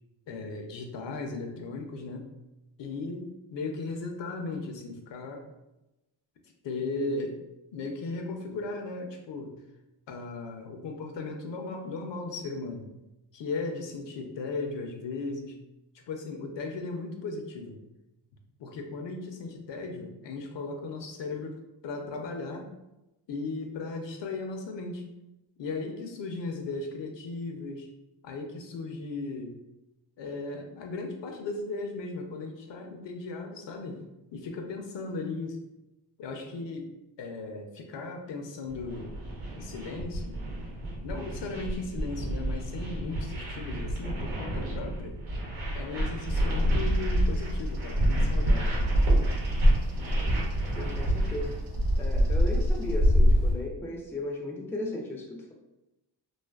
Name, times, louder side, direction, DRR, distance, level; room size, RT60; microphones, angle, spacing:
voice 1, 0.3-2.3 2.8-5.4 6.6-7.4 7.7-9.5 10.1-12.9 13.3-15.6 16.1-17.8 18.6-22.7 23.3-25.0 25.6-27.9 28.2-29.5 30.2-34.0 34.3-35.6 36.2-36.9 37.2-39.1 39.5-40.4 41.0-45.2 45.7-48.8, left 3 dB, 65° left, 3 dB, 0.6 m, -36 dB
sound 1, 38.7-51.6, right 1 dB, 90° right, 0.9 m, -29 dB
Bird vocalization bird call bird song, 46.3-53.5, equal, 60° right, 0.7 m, -26 dB
voice 2, 50.8-51.5 52.0-55.5, left 1 dB, 5° left, 0 dB, 0.4 m, -36 dB
2.4 x 2.4 x 2.3 m, 0.94 s
cardioid pair, 70°, 46 cm